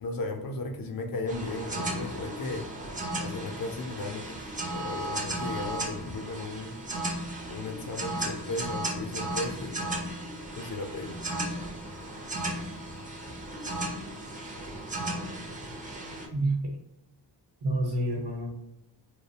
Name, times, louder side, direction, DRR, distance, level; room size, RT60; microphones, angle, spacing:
voice 1, 0.0-2.7 3.2-4.4 4.7-6.8 7.5-10.1 10.6-11.2, left 2 dB, 55° left, 4 dB, 0.5 m, -35 dB
sound 1, 1.3-16.3, right 1 dB, 20° right, 0.4 m, -35 dB
voice 2, 16.3-16.8 17.6-18.5, right 1 dB, 65° right, -1 dB, 0.9 m, -28 dB
2.3 x 2.0 x 2.7 m, 0.85 s
wide cardioid pair, 105°, 43 cm